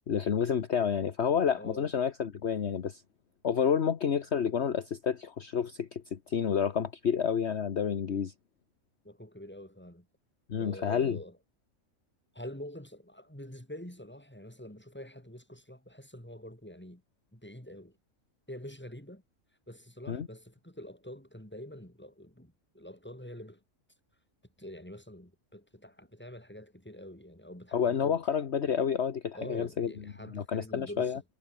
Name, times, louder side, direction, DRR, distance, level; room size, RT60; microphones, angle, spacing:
voice 1, 0.1-3.0 3.4-8.3 10.5-11.2 20.1-20.3 27.7-29.9 30.3-31.2, left 7 dB, 55° left, 1.4 m, -29 dB
voice 2, 1.6-1.9 9.0-10.1 10.6-11.4 12.3-17.0 17.3-18.0 18.5-19.2 19.7-23.6 24.6-28.2 29.3-31.2, left 1 dB, 5° left, 4.3 m, -46 dB
omnidirectional pair, 1.4 m